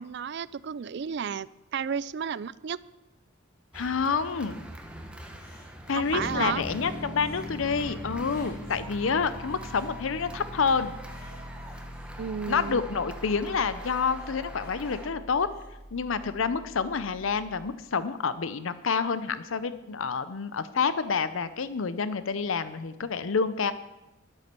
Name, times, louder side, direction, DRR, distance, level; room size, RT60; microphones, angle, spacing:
voice 1, 0.0-2.8 6.0-6.6 12.2-12.8, right 7 dB, 55° right, 19 dB, 0.4 m, -32 dB
voice 2, 3.7-4.6 5.9-10.9 12.5-15.5 15.9-23.7, left 5 dB, 80° left, 13 dB, 0.6 m, -28 dB
sound 1, 3.7-15.1, right 1 dB, 5° right, 1.1 m, -44 dB
sound 2, 5.2-6.3 6.6-8.9 9.4-10.3 10.7-12.7 13.7-15.7 16.2-16.3, left 1 dB, 50° left, 4.0 m, -53 dB
sound 3, 6.1-17.7, left 1 dB, 35° right, 2.1 m, -42 dB
11.5 x 8.6 x 6.8 m, 1.0 s
head